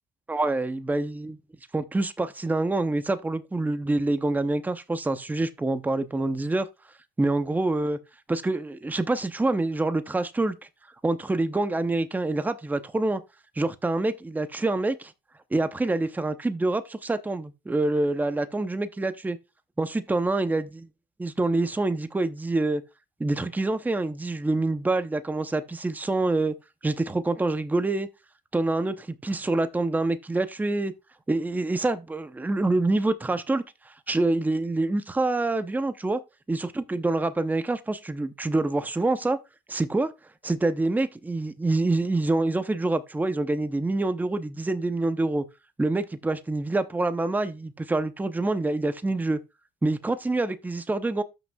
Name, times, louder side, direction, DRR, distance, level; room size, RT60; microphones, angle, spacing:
voice 1, 0.3-1.4 1.7-6.7 7.2-8.0 8.3-10.6 11.0-13.2 13.6-15.1 15.5-19.4 19.8-20.9 21.2-22.8 23.2-26.5 26.8-28.1 28.5-30.9 31.3-36.2 36.5-39.4 39.7-40.1 40.4-45.5 45.8-49.4 49.8-51.2, right 2 dB, 10° right, 0.7 m, -26 dB
13.0 x 6.1 x 2.3 m
cardioid pair, 110°, 17 cm